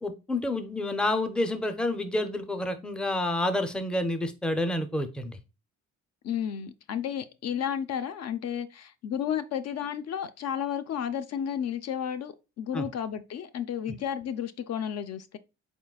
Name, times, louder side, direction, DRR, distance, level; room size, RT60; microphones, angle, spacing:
voice 1, 0.0-5.4 12.7-12.9, left 1 dB, 5° left, 0.5 m, -29 dB
voice 2, 6.2-15.4, left 9 dB, 55° left, 0.4 m, -32 dB
4.2 x 3.7 x 2.3 m
cardioid pair, 90°, 30 cm